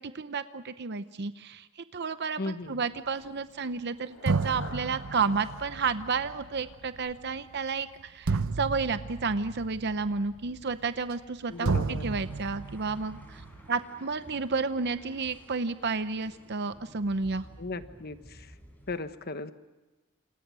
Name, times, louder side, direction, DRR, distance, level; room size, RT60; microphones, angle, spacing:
voice 1, 0.0-13.4 13.7-17.5, right 4 dB, 55° right, 11 dB, 0.7 m, -31 dB
voice 2, 2.4-2.8 11.5-12.1 17.6-18.5 18.9-19.5, left 2 dB, 50° left, 10 dB, 1.2 m, -36 dB
sound 1, 3.7-3.8 4.3-11.4 11.6-13.7, right 4 dB, 90° right, 0.8 m, -33 dB
sound 2, 3.8-7.8, left 2 dB, 80° left, 4.8 m, -48 dB
sound 3, 11.5-19.0, equal, 10° left, 4.8 m, -54 dB
29.0 x 28.0 x 6.2 m, 1.2 s
head